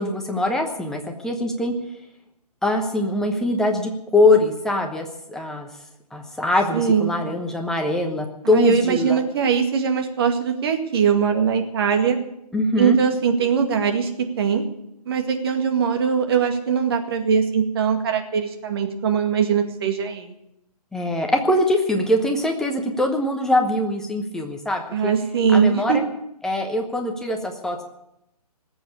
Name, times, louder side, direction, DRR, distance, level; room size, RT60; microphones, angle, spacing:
voice 1, 0.0-1.7 2.6-5.7 6.1-9.2 12.5-13.0 20.9-25.1 25.5-26.1 26.4-27.8, left 1 dB, 5° left, 3 dB, 1.0 m, -22 dB
voice 2, 6.7-7.1 8.4-12.2 12.8-14.1 14.4-14.6 15.1-20.3 24.9-26.0, right 6 dB, 40° right, 4 dB, 2.1 m, -21 dB
19.5 x 7.9 x 8.4 m, 0.80 s
figure-of-eight pair, 140°, 20 cm